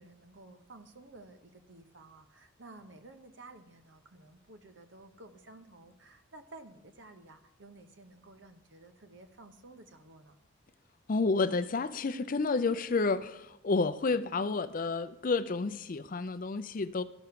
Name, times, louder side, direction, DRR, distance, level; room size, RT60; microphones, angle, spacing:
voice 1, 0.0-10.4, right 2 dB, 60° right, 0.9 m, -53 dB
voice 2, 11.1-17.0, left 3 dB, 40° left, 0.4 m, -30 dB
13.5 x 6.6 x 5.8 m
head